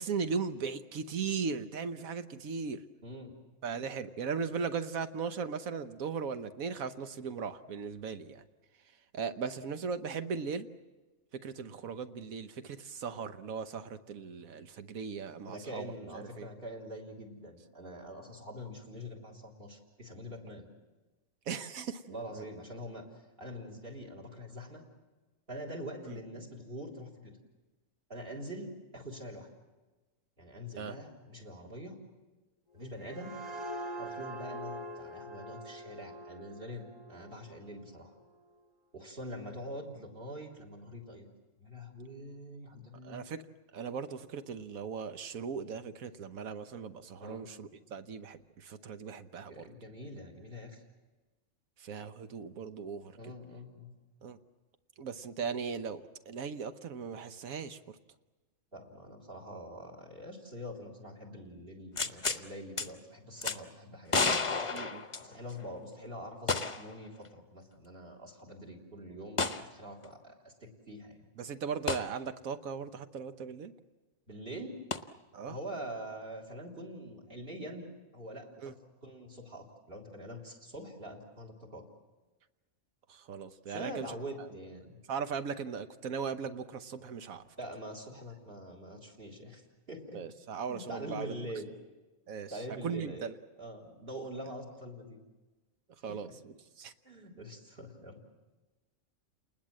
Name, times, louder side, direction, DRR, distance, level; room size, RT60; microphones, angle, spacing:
voice 1, 0.0-2.8 3.6-8.4 9.1-10.7 11.4-15.9 16.1-16.5 21.5-22.5 26.0-26.2 30.8-30.9 43.0-43.4 43.7-49.7 51.8-53.2 54.2-54.4 55.0-58.0 64.7-65.0 71.4-73.7 75.3-75.6 78.6-78.7 83.1-84.1 84.4-84.5 85.1-87.4 90.1-91.4 92.3-93.3 96.0-96.9, right 6 dB, 80° right, 10 dB, 1.4 m, -38 dB
voice 2, 3.0-3.4 15.5-20.7 22.1-23.0 23.4-24.8 25.5-27.3 28.1-29.5 30.4-32.0 32.7-33.4 34.0-38.1 38.9-41.3 41.6-43.3 47.2-47.5 49.5-50.8 53.2-53.9 58.7-64.4 65.2-71.3 74.3-74.8 75.5-81.8 83.7-85.0 87.6-89.6 89.9-90.2 90.6-91.7 92.5-93.3 93.6-95.2 96.1-96.3 97.0-98.2, equal, 40° right, 3 dB, 3.7 m, -44 dB
sound 1, 32.8-38.2, equal, 20° right, 3.6 m, -44 dB
sound 2, 62.0-62.4 62.8-62.9 63.4-63.6 64.1-65.6 66.5-66.9 67.2-67.3 69.4-69.6 71.9-72.1 74.9-75.0, left 4 dB, 30° left, 0.8 m, -31 dB
29.5 x 20.0 x 7.6 m, 1.2 s
omnidirectional pair, 1.4 m